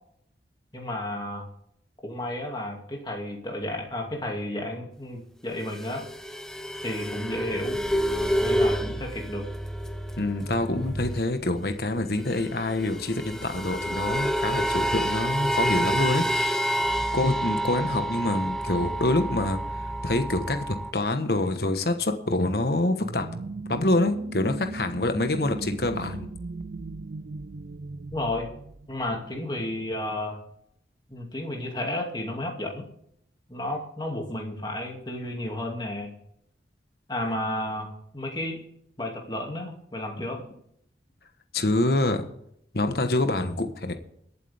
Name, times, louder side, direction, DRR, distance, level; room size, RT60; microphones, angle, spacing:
voice 1, 0.7-1.5 2.0-6.1 6.8-7.8 8.4-9.5 28.1-28.5 28.9-30.4 31.1-32.8 33.5-36.1 37.1-38.6 39.0-40.4, left 1 dB, 25° left, 1 dB, 2.5 m, -32 dB
sound 1, 5.6-11.4 11.7-11.8 12.0-20.9, equal, 5° left, 0.7 m, -29 dB
voice 2, 10.2-16.8 17.1-19.6 20.0-23.3 23.7-26.3 41.5-42.3 42.7-43.9, left 2 dB, 60° left, 7 dB, 1.3 m, -26 dB
sound 2, 23.0-29.4, right 3 dB, 50° right, 0.4 m, -38 dB
21.5 x 8.5 x 3.6 m, 0.72 s
head